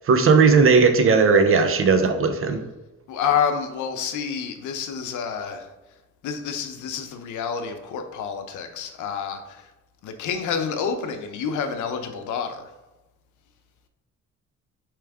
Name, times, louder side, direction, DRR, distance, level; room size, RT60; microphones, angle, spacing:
voice 1, 0.1-2.6, right 4 dB, 45° right, 7 dB, 0.6 m, -17 dB
voice 2, 3.1-5.7 6.2-9.7 10.0-12.7, left 7 dB, 80° left, 7 dB, 0.6 m, -28 dB
4.6 x 3.1 x 3.5 m, 1.0 s
cardioid pair, 90°, 30 cm